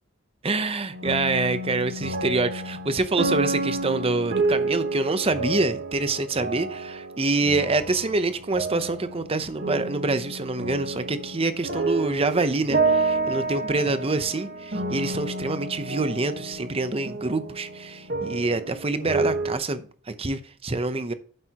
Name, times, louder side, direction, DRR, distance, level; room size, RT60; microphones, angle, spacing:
voice 1, 0.4-21.1, right 3 dB, 30° right, 0.7 m, -26 dB
sound 1, 0.9-19.6, right 2 dB, 50° right, 1.3 m, -29 dB
9.2 x 7.7 x 2.9 m
head